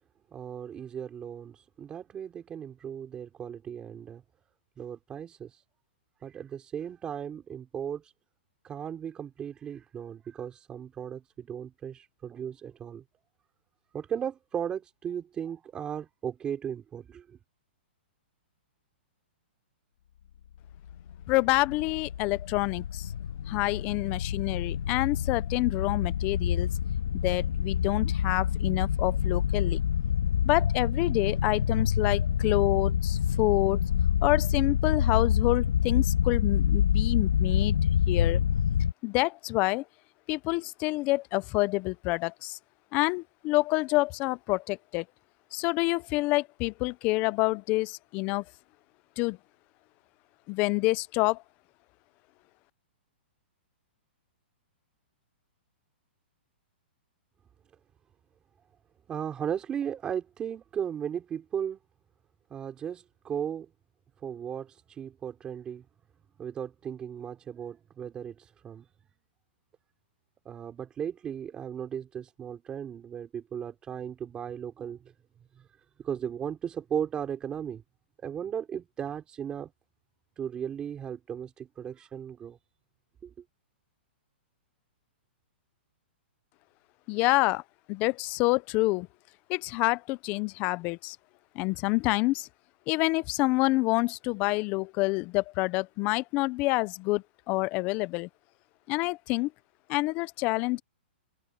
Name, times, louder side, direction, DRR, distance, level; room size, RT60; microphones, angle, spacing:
voice 1, 0.3-4.2 4.8-5.6 6.2-8.1 8.6-13.0 13.9-17.4 59.1-61.8 62.5-63.7 64.2-65.8 66.4-68.9 70.4-75.0 75.5-75.7 76.0-77.8 78.2-79.7 80.4-82.6 83.2-83.3, right 8 dB, 15° right, 4.8 m, -36 dB
sound 1, 20.9-38.9, left 9 dB, 75° left, 2.4 m, -27 dB
voice 2, 21.3-23.1 23.5-26.7 27.1-29.8 30.4-33.8 34.2-37.8 38.1-38.4 39.0-39.8 40.3-42.6 42.9-45.0 45.5-48.4 49.2-49.4 50.5-51.4 87.1-87.6 87.9-89.1 89.5-91.2 91.6-92.5 92.9-98.3 98.9-99.5 99.9-100.8, left 22 dB, 25° left, 0.5 m, -27 dB
hypercardioid pair, 165°, 6 cm